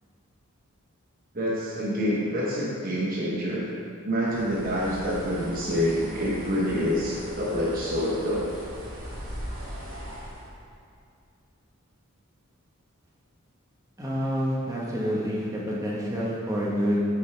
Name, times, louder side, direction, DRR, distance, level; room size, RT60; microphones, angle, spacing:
voice 1, 1.3-3.7 4.0-8.5, equal, 40° right, -5 dB, 1.0 m, -27 dB
Bird, 4.2-10.5, equal, 65° right, 1.7 m, -39 dB
voice 2, 14.0-17.0, equal, 15° right, -5 dB, 1.3 m, -28 dB
9.1 x 7.0 x 3.4 m, 2.4 s
head